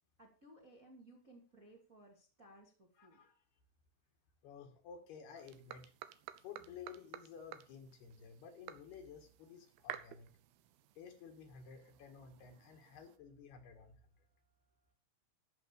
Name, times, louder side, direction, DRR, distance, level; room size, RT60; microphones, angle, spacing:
voice 1, 0.2-3.2, right 1 dB, 25° right, 0 dB, 2.1 m, -60 dB
voice 2, 3.0-3.4 4.4-5.8 6.4-10.3 11.0-13.9, left 6 dB, 65° left, 5 dB, 3.4 m, -53 dB
sound 1, 5.4-13.2, right 13 dB, 90° right, 2.1 m, -53 dB
14.0 x 6.1 x 6.8 m, 0.38 s
omnidirectional pair, 5.3 m